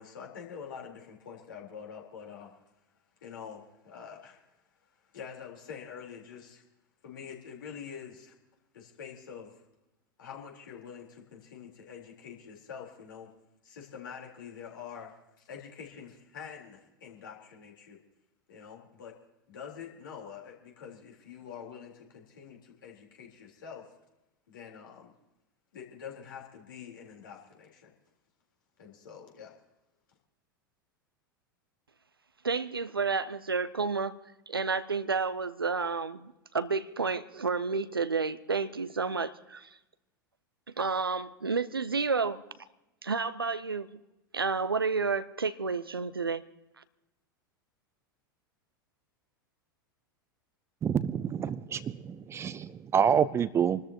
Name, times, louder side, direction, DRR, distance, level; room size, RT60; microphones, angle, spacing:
voice 1, 0.0-2.5 3.2-4.5 5.0-6.6 7.0-8.3 8.7-9.5 10.2-13.3 13.6-18.0 18.5-19.1 19.5-23.9 24.5-25.1 25.7-27.9 28.8-29.5, left 7 dB, 65° left, 3.9 m, -46 dB
voice 2, 32.4-34.1 34.5-39.7 40.8-42.4 43.0-44.0 44.3-46.5 46.8-46.9, right 4 dB, 85° right, 0.7 m, -30 dB
voice 3, 50.8-53.8, right 8 dB, 20° right, 0.6 m, -27 dB
27.0 x 13.5 x 3.0 m
figure-of-eight pair, 90°, 12 cm